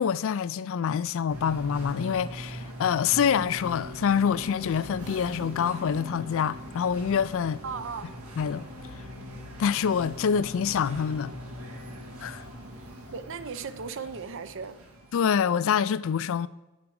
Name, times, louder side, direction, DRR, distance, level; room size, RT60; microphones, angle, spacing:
voice 1, 0.0-7.6 8.4-8.7 9.6-11.3 12.2-12.4 15.1-16.5, left 7 dB, 65° left, 0.3 m, -26 dB
sound 1, 1.3-15.1, equal, 80° right, 1.9 m, -41 dB
voice 2, 7.6-8.2 12.8-14.8, right 5 dB, 60° right, 0.6 m, -37 dB
8.6 x 8.3 x 4.7 m
head